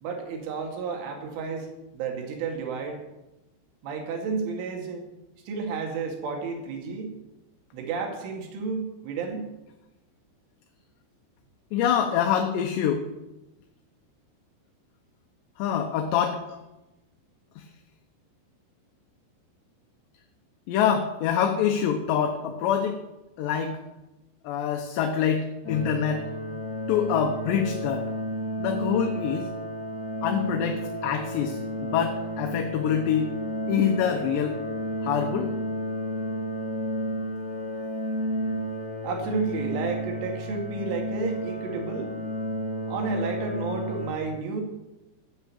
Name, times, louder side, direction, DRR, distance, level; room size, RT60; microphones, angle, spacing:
voice 1, 0.0-1.7 1.9-3.0 3.8-5.0 5.5-7.1 7.7-9.5 39.0-42.2 42.9-44.6, right 4 dB, 80° right, 2 dB, 4.6 m, -31 dB
voice 2, 11.7-13.0 15.6-16.6 20.7-22.9 23.4-23.7 24.4-26.3 26.9-28.0 28.6-29.5 30.2-33.3 33.7-34.6 35.0-35.5, left 8 dB, 75° left, 4 dB, 3.0 m, -25 dB
sound 1, 25.6-44.1, equal, 20° left, 4.3 m, -32 dB
14.0 x 8.6 x 8.6 m, 0.98 s
omnidirectional pair, 5.6 m